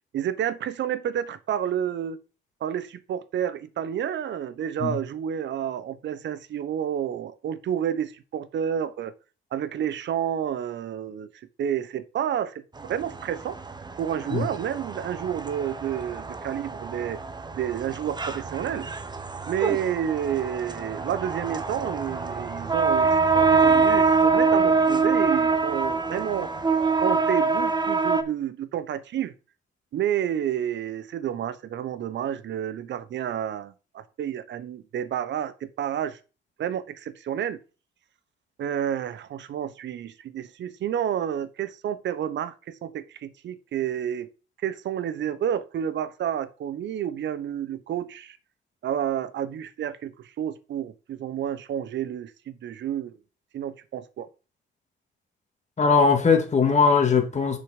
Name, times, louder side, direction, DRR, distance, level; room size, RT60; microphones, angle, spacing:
voice 1, 0.1-2.2 2.6-9.1 9.5-11.3 11.6-13.6 14.0-17.2 17.5-18.9 19.5-26.5 27.0-29.3 29.9-36.2 36.6-37.6 38.6-44.3 44.6-48.4 48.8-53.2 53.5-54.3, right 9 dB, 65° right, 0.9 m, -30 dB
sound 1, 12.8-28.2, right 4 dB, 20° right, 1.0 m, -25 dB
voice 2, 55.8-57.6, left 5 dB, 35° left, 2.1 m, -20 dB
6.8 x 5.8 x 5.1 m
cardioid pair, 90°, 20 cm